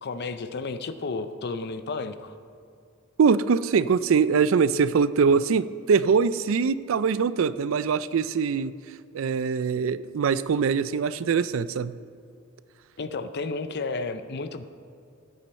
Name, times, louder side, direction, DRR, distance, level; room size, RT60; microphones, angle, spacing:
voice 1, 0.0-2.3 13.0-14.7, left 3 dB, 50° left, 11 dB, 0.6 m, -32 dB
voice 2, 3.2-8.7 9.1-12.0, right 5 dB, 70° right, 16 dB, 0.4 m, -23 dB
15.0 x 9.1 x 4.3 m, 2.5 s
head